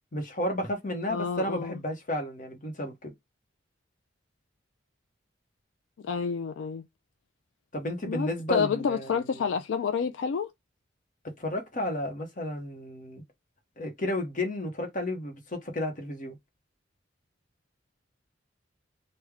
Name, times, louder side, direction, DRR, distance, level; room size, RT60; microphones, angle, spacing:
voice 1, 0.1-3.1 7.7-9.5 11.4-13.2 13.8-16.4, left 1 dB, 45° left, 1.0 m, -32 dB
voice 2, 1.1-1.8 6.0-6.8 8.1-10.5, left 6 dB, 75° left, 0.3 m, -29 dB
3.2 x 2.2 x 3.5 m
head